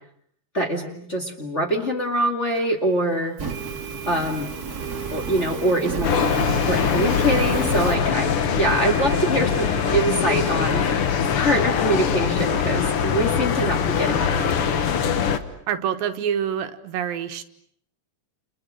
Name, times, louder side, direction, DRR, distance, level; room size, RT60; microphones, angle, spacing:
voice 1, 0.5-3.4 4.1-4.5 5.1-8.3 8.6-14.6, right 1 dB, 25° left, 2 dB, 2.2 m, -24 dB
sound 1, 2.5-2.6 3.5-15.1, right 9 dB, 70° right, 2.9 m, -41 dB
Fire, 3.4-8.0, right 5 dB, 30° right, 2.4 m, -32 dB
sound 2, 6.0-15.4, left 7 dB, 55° left, 1.7 m, -22 dB
voice 2, 8.8-9.2 15.7-17.4, right 9 dB, 85° right, 8 dB, 3.0 m, -27 dB
29.5 x 29.0 x 6.5 m, 0.65 s
omnidirectional pair, 4.0 m